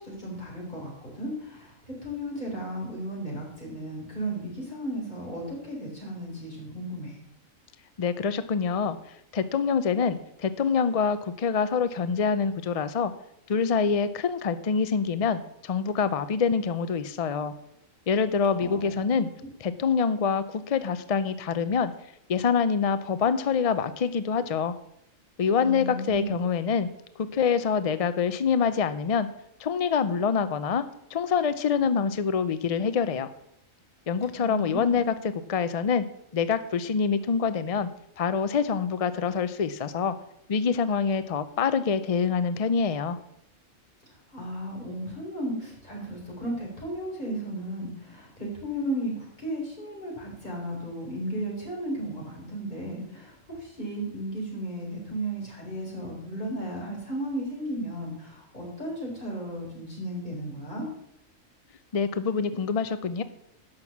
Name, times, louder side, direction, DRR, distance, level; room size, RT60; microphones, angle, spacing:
voice 1, 0.0-7.2 18.6-19.0 25.6-26.3 34.3-35.0 44.3-60.9, right 1 dB, 35° left, -2 dB, 4.3 m, -34 dB
voice 2, 8.0-9.0 9.3-13.1 13.5-17.5 18.1-19.3 19.6-21.9 22.3-24.7 25.4-26.9 27.2-29.3 29.6-30.8 31.1-33.3 34.1-35.1 35.5-36.0 36.3-37.9 38.2-40.1 40.5-43.2 61.9-63.2, left 6 dB, 60° left, 12 dB, 0.3 m, -25 dB
11.5 x 6.2 x 7.2 m, 0.76 s
omnidirectional pair, 1.4 m